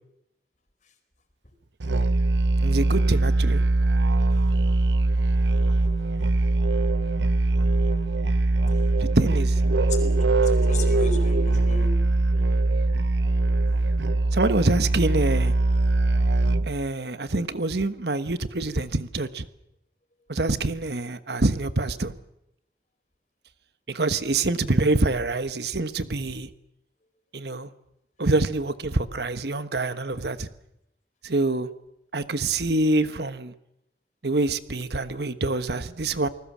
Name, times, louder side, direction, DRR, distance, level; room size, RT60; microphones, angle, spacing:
Musical instrument, 1.8-16.8, right 2 dB, 90° right, 0.9 m, -22 dB
voice 1, 2.6-3.6 9.0-9.5 14.3-15.5 16.6-19.5 20.3-22.1 23.9-26.5 27.3-27.7 28.2-30.5 31.2-31.7 32.1-33.5 34.2-36.3, right 2 dB, 70° right, 1.2 m, -25 dB
voice 2, 10.3-11.9, left 3 dB, 45° left, 4.6 m, -35 dB
28.5 x 20.0 x 7.4 m
head